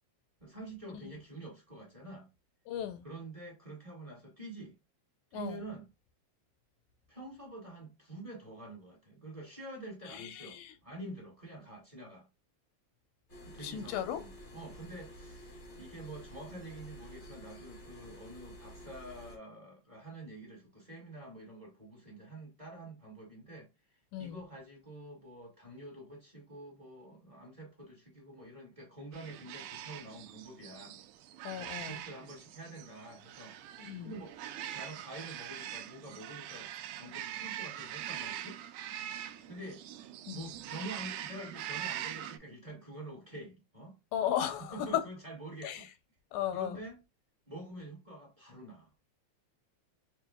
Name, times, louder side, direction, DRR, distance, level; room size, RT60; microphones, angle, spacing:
voice 1, 0.4-2.3 3.0-4.8 5.3-5.8 7.1-12.3 13.4-23.7 24.2-31.0 31.6-33.5 34.0-34.4 34.7-36.7 37.0-38.6 39.5-39.8 40.3-43.9 44.7-45.9 46.5-47.0 47.5-48.9, right 2 dB, 20° right, 1.0 m, -47 dB
voice 2, 2.7-3.1 5.3-5.6 10.1-10.7 13.6-14.2 24.1-24.4 31.4-32.0 33.8-34.2 40.3-40.5 44.1-45.0 45.6-45.9 46.3-46.8, left 10 dB, 90° left, 2.2 m, -35 dB
sound 1, 13.3-19.4, equal, 55° left, 0.5 m, -50 dB
sound 2, 29.1-42.4, right 11 dB, 80° right, 1.7 m, -43 dB
5.9 x 2.6 x 2.3 m
omnidirectional pair, 3.3 m